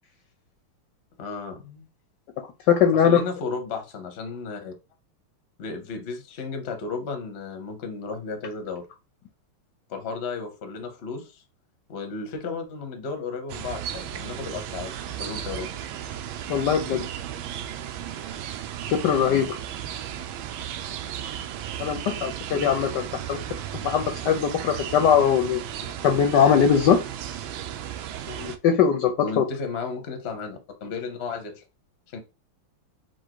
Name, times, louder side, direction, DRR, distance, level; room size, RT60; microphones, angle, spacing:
voice 1, 1.2-1.9 2.9-4.7 5.6-8.9 9.9-11.4 11.9-15.7 19.3-19.5 21.7-21.8 29.2-31.6 32.1-32.2, left 4 dB, 50° left, 0.8 m, -34 dB
voice 2, 2.7-3.2 16.5-17.0 18.9-19.5 21.8-23.4 23.8-25.6 26.0-27.0 28.3-29.4, left 8 dB, 70° left, 1.1 m, -21 dB
sound 1, 13.5-28.6, right 10 dB, 80° right, 1.3 m, -35 dB
4.5 x 2.4 x 4.5 m
omnidirectional pair, 2.3 m